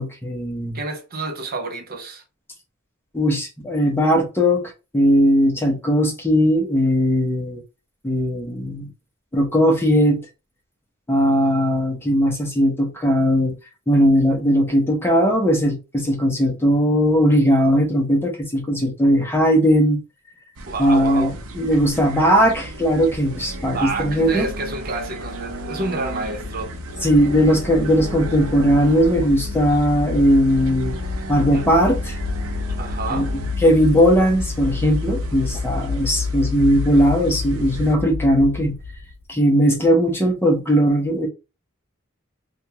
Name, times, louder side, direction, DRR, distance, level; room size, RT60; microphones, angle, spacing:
voice 1, 0.0-0.8 3.1-7.6 8.0-8.9 9.3-10.2 11.1-13.6 13.9-20.0 20.8-24.5 27.0-31.0 31.3-32.2 33.1-38.7 39.3-41.3, equal, 10° left, 0.8 m, -18 dB
voice 2, 0.7-2.2 20.7-21.3 23.7-26.7 31.5-31.6 32.8-33.3, right 3 dB, 45° right, 0.7 m, -29 dB
sound 1, 20.6-38.0, right 1 dB, 85° right, 0.7 m, -34 dB
sound 2, 23.9-39.2, left 4 dB, 70° left, 0.5 m, -30 dB
3.4 x 2.3 x 2.8 m
head